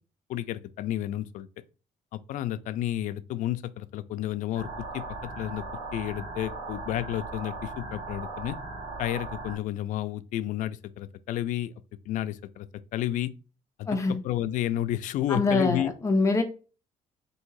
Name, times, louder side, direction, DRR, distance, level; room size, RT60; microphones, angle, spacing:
voice 1, 0.3-1.5 2.1-4.7 4.9-5.6 5.9-8.6 9.0-11.7 12.1-13.3 13.8-15.9, left 13 dB, 75° left, 0.4 m, -31 dB
sound 1, 4.5-9.5, right 3 dB, 65° right, 1.4 m, -38 dB
voice 2, 13.9-14.2 15.3-16.4, left 3 dB, 25° left, 0.5 m, -24 dB
3.6 x 2.8 x 4.6 m
cardioid pair, 170°, 13 cm